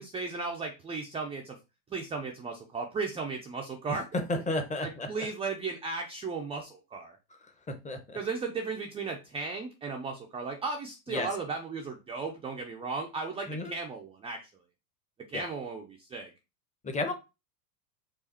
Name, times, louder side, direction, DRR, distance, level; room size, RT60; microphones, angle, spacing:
voice 1, 0.0-1.6 1.9-4.1 4.8-7.2 8.1-14.4 15.3-16.3, right 4 dB, 15° right, 2 dB, 0.4 m, -35 dB
voice 2, 4.3-5.1 7.7-8.2 11.1-11.3 13.5-13.7 15.3-15.5 16.8-17.1, left 2 dB, 15° left, 6 dB, 0.7 m, -32 dB
4.8 x 2.4 x 4.2 m, 0.27 s
supercardioid pair, 110°, 49 cm